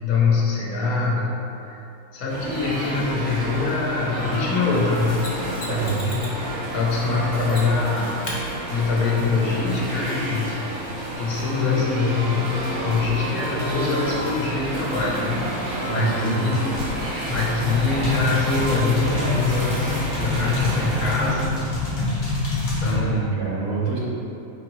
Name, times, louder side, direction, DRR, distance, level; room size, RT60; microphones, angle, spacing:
voice 1, 0.0-1.8 2.1-5.3 5.7-8.3 8.7-10.7 11.2-12.6 12.8-15.5 15.9-16.7 17.0-21.6 22.8-23.2, left 4 dB, 85° left, -4 dB, 1.1 m, -24 dB
sound 1, 2.3-21.3, right 1 dB, 80° right, 1.4 m, -29 dB
Mechanisms, 5.2-6.4 7.5-7.9 8.2-8.4 11.1-11.2, left 1 dB, 55° left, 1.0 m, -36 dB
voice 2, 5.7-6.0 15.9-16.6 22.8-24.0, right 5 dB, 55° right, -4 dB, 0.9 m, -26 dB
sound 2, 16.7-23.0, left 2 dB, 40° left, 0.8 m, -26 dB
4.9 x 2.6 x 2.9 m, 2.8 s
omnidirectional pair, 1.5 m